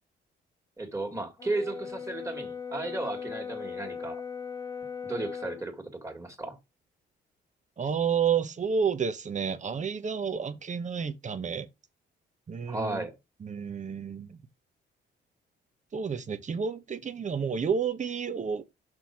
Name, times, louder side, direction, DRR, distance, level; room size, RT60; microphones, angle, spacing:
voice 1, 0.8-4.2 5.0-6.6 12.7-13.1, right 2 dB, 15° right, 2.2 m, -34 dB
Brass instrument, 1.4-5.7, left 6 dB, 15° left, 1.0 m, -38 dB
voice 2, 7.8-11.7 12.5-13.0 13.4-14.4 15.9-18.6, right 6 dB, 40° right, 0.9 m, -30 dB
6.2 x 4.3 x 4.8 m
cardioid pair, 90°, 20 cm